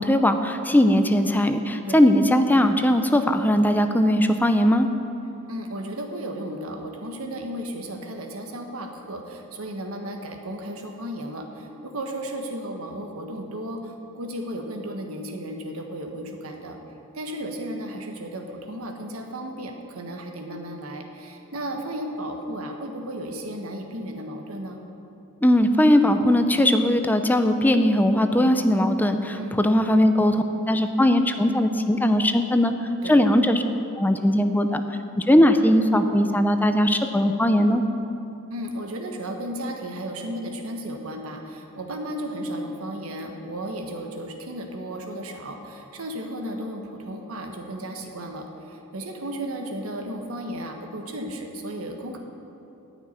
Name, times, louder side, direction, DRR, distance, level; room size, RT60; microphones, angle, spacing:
voice 1, 0.0-4.9 25.4-32.7 33.0-33.6 34.0-34.8 35.2-37.8, left 1 dB, 10° left, 7 dB, 0.5 m, -19 dB
voice 2, 5.5-16.8 17.1-24.8 29.4-29.6 33.0-33.2 38.5-52.2, right 1 dB, 85° right, 3 dB, 1.5 m, -34 dB
14.0 x 6.0 x 9.7 m, 2.9 s
head